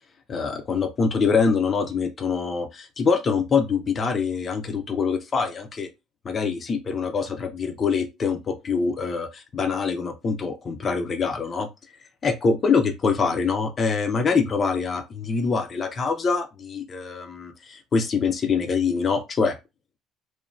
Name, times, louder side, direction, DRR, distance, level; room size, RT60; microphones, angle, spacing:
voice 1, 0.3-5.9 6.2-11.7 12.2-19.6, left 5 dB, 30° left, 0.4 m, -24 dB
3.0 x 2.1 x 2.5 m
cardioid pair, 160°, 0 cm